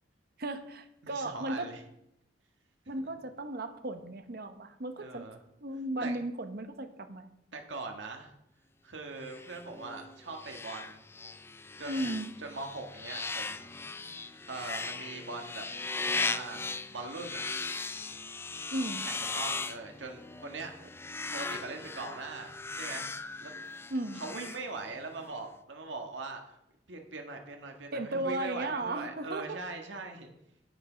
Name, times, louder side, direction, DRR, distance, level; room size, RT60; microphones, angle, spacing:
voice 1, 0.4-1.7 2.9-5.3 5.6-7.3 11.8-12.3 18.7-19.0 23.9-24.2 27.9-29.6, right 2 dB, 55° right, 9 dB, 1.1 m, -35 dB
voice 2, 1.0-1.8 5.0-5.4 6.0-6.2 7.5-8.3 8.8-11.0 11.8-12.1 12.4-13.7 14.5-15.6 16.1-17.4 19.0-20.7 21.3-23.5 24.2-26.6 26.9-30.3, right 3 dB, 85° right, 3 dB, 1.6 m, -41 dB
sound 1, 9.2-25.2, left 3 dB, 15° left, 0.4 m, -38 dB
10.0 x 8.3 x 5.1 m, 0.79 s
head